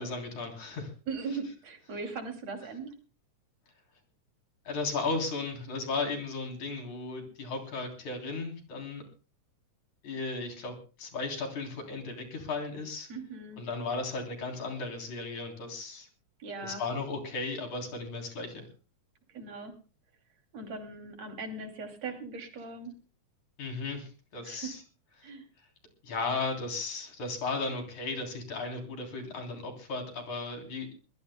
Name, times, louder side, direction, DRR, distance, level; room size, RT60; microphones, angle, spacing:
voice 1, 0.0-0.9 4.6-9.0 10.0-13.1 13.6-16.1 16.6-18.6 23.6-24.8 25.2-25.3 26.0-30.9, left 3 dB, 75° left, 2 dB, 4.9 m, -35 dB
voice 2, 1.1-2.9 13.1-13.6 16.4-16.8 19.3-19.7 20.5-22.9 24.4-24.7 25.2-25.5, right 4 dB, 60° right, 4 dB, 4.0 m, -39 dB
22.0 x 20.0 x 2.2 m, 0.35 s
omnidirectional pair, 3.3 m